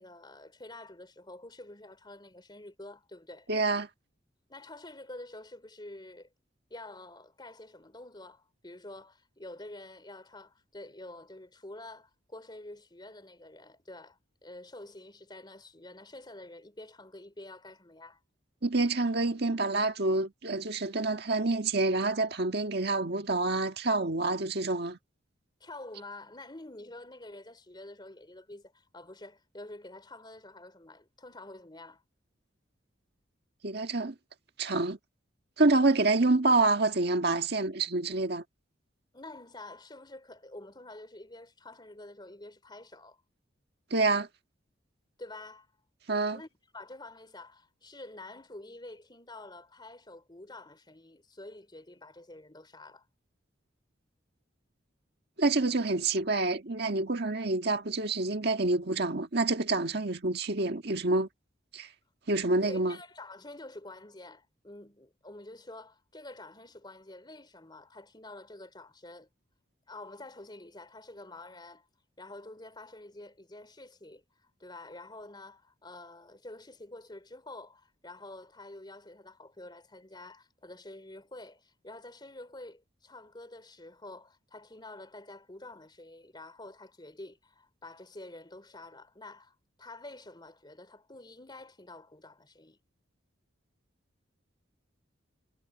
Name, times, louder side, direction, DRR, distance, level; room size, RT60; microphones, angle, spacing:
voice 1, 0.0-3.5 4.5-6.3 6.7-18.2 25.6-32.0 39.1-43.2 45.2-45.7 46.3-46.5 46.7-53.1 62.6-69.3 69.9-71.9 72.2-74.2 74.6-92.8, left 2 dB, 25° left, 3.6 m, -48 dB
voice 2, 3.5-3.9 18.6-25.0 33.6-34.1 34.6-35.0 35.6-38.4 43.9-44.3 46.1-46.4 55.4-61.3 61.7-61.9 62.3-63.0, right 2 dB, 60° right, 1.7 m, -27 dB
head